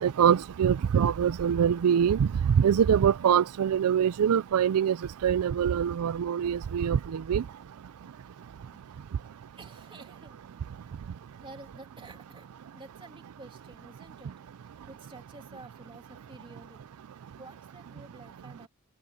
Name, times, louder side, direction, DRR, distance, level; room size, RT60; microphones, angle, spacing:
voice 1, 0.0-2.3 2.6-5.0 5.2-7.4, right 8 dB, 80° right, 0.4 m, -24 dB
voice 2, 8.6-9.0 9.6-10.4 11.2-14.3 14.9-16.9 17.4-18.7, right 2 dB, 25° right, 2.7 m, -51 dB
open air
head